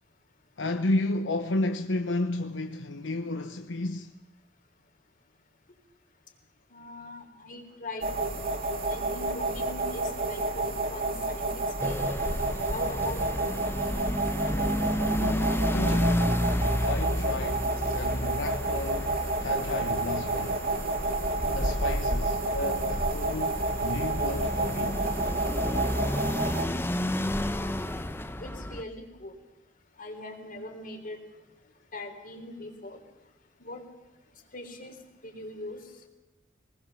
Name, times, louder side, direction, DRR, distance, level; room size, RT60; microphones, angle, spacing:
voice 1, 0.6-4.1 15.2-16.3 16.8-17.7 17.9-19.1 19.4-20.6 21.5-25.0, left 2 dB, 80° left, 0.9 m, -32 dB
voice 2, 6.7-8.4 8.8-10.6 10.9-12.2 12.7-13.6 28.4-29.4 30.0-31.2 31.9-33.0 33.6-33.8 34.5-35.0 35.2-35.8, left 2 dB, 45° left, 3.6 m, -41 dB
sound 1, 8.0-26.6, right 2 dB, 50° right, 3.1 m, -30 dB
sound 2, 11.8-28.8, left 1 dB, 15° left, 0.9 m, -31 dB
23.5 x 20.0 x 7.1 m
head